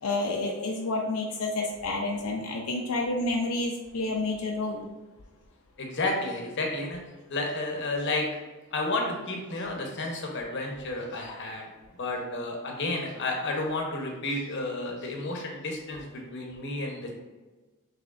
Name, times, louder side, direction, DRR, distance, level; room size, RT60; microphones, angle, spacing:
voice 1, 0.0-4.9, left 2 dB, 85° left, 0 dB, 0.5 m, -29 dB
voice 2, 5.8-7.0 7.3-8.3 8.7-11.7 12.0-17.1, left 2 dB, 55° left, 1 dB, 0.9 m, -31 dB
6.0 x 3.2 x 2.4 m, 1.2 s
head